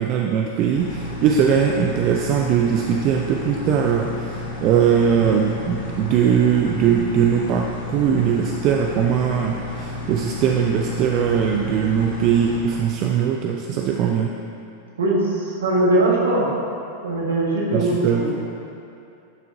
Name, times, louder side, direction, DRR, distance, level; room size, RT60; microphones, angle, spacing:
voice 1, 0.0-14.3 17.7-18.3, right 8 dB, 40° right, 2 dB, 0.4 m, -20 dB
sound 1, 0.8-12.6, left 2 dB, 65° left, 1.6 m, -32 dB
voice 2, 15.0-16.5 17.0-18.3, right 2 dB, 65° right, -4 dB, 1.7 m, -20 dB
10.5 x 6.2 x 2.7 m, 2.6 s
figure-of-eight pair, 90°, 0 cm